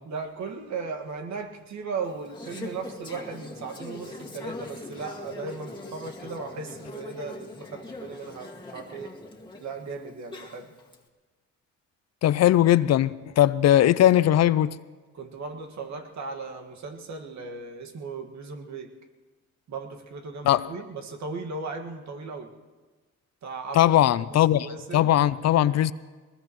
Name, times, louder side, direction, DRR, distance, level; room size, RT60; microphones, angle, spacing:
voice 1, 0.1-9.1 9.6-10.7 15.1-18.9 19.7-22.5 23.4-23.9 24.2-25.1, right 4 dB, 65° right, 1.8 m, -37 dB
Conversation / Chatter, 2.0-11.0, left 2 dB, 15° left, 1.9 m, -42 dB
voice 2, 12.2-14.8 20.4-20.7 23.7-24.7 24.9-25.9, left 12 dB, 60° left, 0.5 m, -19 dB
21.5 x 20.5 x 3.1 m
cardioid pair, 90°, 30 cm